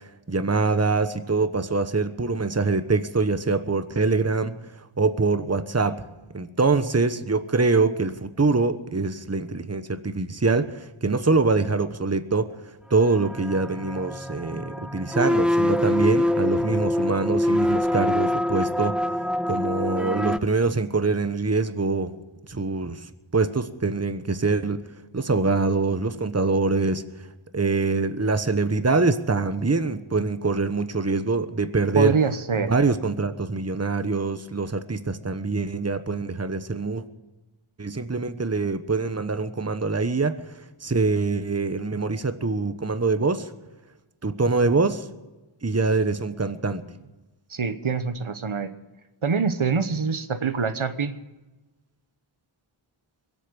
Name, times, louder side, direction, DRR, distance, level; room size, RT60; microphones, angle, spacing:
voice 1, 0.3-4.6 5.0-6.0 6.3-12.5 12.9-19.0 19.5-22.1 22.5-23.0 23.3-24.8 25.1-27.0 27.5-32.1 32.7-37.0 37.8-40.4 40.8-43.5 44.2-45.1 45.6-46.8, right 3 dB, 30° right, 11 dB, 1.1 m, -24 dB
sound 1, 13.1-20.4, left 1 dB, ahead, 0.5 m, -24 dB
voice 2, 31.9-32.7 47.5-48.7 49.2-51.1, right 5 dB, 75° right, 10 dB, 1.1 m, -25 dB
23.0 x 8.5 x 6.9 m, 1.1 s
wide cardioid pair, 40°, 49 cm